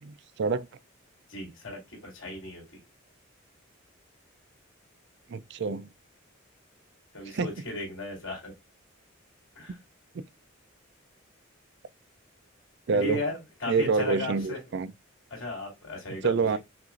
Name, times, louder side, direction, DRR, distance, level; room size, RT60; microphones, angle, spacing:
voice 1, 0.0-0.7 5.3-5.9 7.3-7.5 10.1-10.2 12.9-13.3 13.7-14.9 16.2-16.6, right 4 dB, 60° right, 0.4 m, -27 dB
voice 2, 1.3-2.8 7.1-8.5 9.6-9.8 12.9-14.6 15.3-16.6, left 2 dB, 90° left, 2.6 m, -36 dB
5.8 x 2.5 x 2.4 m
head